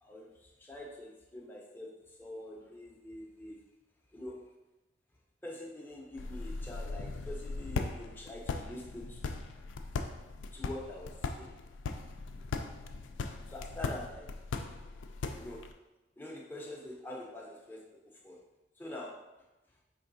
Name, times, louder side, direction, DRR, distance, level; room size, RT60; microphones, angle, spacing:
voice 1, 0.0-1.9 2.2-3.6 4.1-4.4 5.4-9.4 10.5-11.6 13.5-14.3 15.3-15.6 16.2-17.8 18.2-18.4 18.8-19.3, left 1 dB, 10° left, -2 dB, 0.6 m, -45 dB
sound 1, 6.2-15.7, left 4 dB, 80° left, 0.3 m, -39 dB
4.5 x 3.4 x 2.6 m, 1.0 s
head